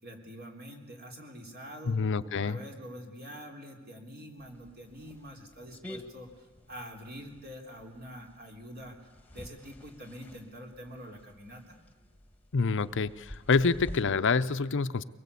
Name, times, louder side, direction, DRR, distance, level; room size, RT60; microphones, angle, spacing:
voice 1, 0.0-9.0 9.3-11.8, equal, 50° right, 2 dB, 3.7 m, -46 dB
voice 2, 1.8-2.6 12.5-15.0, left 4 dB, 60° left, 12 dB, 0.7 m, -27 dB
sound 1, 4.4-14.0, equal, 10° left, 1.5 m, -50 dB
23.5 x 21.5 x 8.4 m, 1.3 s
head